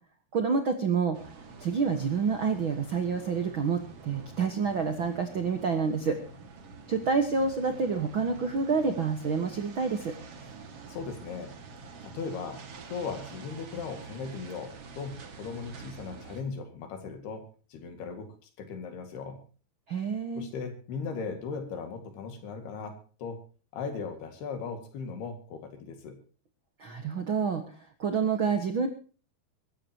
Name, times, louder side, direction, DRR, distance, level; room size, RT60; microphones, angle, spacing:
voice 1, 0.3-1.2 1.6-6.2 6.9-10.2 19.9-20.5 26.8-28.9, right 5 dB, 85° right, 7 dB, 1.1 m, -28 dB
sound 1, 1.1-16.4, right 4 dB, 45° right, 2.4 m, -47 dB
voice 2, 10.9-11.5 12.0-17.4 17.7-19.4 20.4-23.4 23.7-26.2, left 5 dB, 75° left, 6 dB, 4.1 m, -38 dB
24.0 x 13.5 x 2.9 m, 0.38 s
omnidirectional pair, 4.7 m